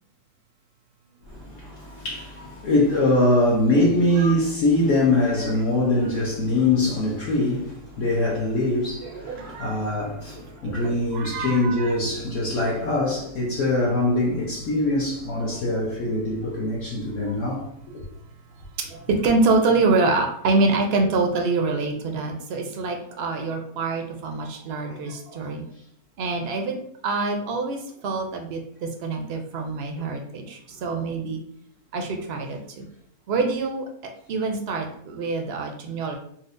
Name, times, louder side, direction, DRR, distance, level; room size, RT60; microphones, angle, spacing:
voice 1, 1.2-17.7 17.9-18.0 24.9-25.0 30.0-30.1, left 2 dB, 60° left, 1.0 m, -23 dB
voice 2, 9.1-9.8 10.6-11.9 18.8-25.7 26.2-27.8 28.0-31.4 31.9-32.8 33.3-33.8 34.3-36.2, right 3 dB, 70° right, 0.6 m, -25 dB
4.1 x 2.2 x 2.5 m
omnidirectional pair, 1.6 m